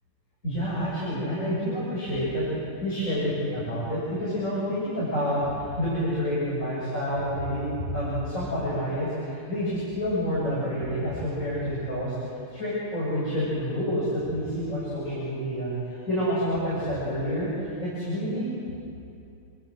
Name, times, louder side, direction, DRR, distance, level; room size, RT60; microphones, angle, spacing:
voice 1, 0.4-18.4, equal, 20° left, -9 dB, 7.5 m, -28 dB
30.0 x 23.5 x 7.7 m, 2.7 s
omnidirectional pair, 4.1 m